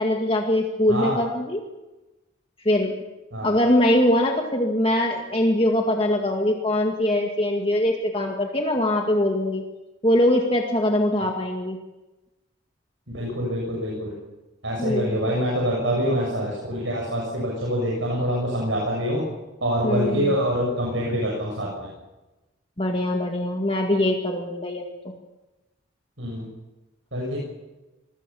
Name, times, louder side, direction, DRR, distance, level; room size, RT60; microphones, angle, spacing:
voice 1, 0.0-1.6 2.6-2.9 3.4-9.6 10.0-11.8 14.8-15.3 19.8-20.3 22.8-24.8, left 1 dB, 30° left, 2 dB, 2.1 m, -22 dB
voice 2, 13.1-14.2 14.6-19.2 19.6-21.9 26.2-26.5 27.1-27.4, equal, 75° right, -3 dB, 7.0 m, -25 dB
26.0 x 20.5 x 7.1 m, 1.1 s
head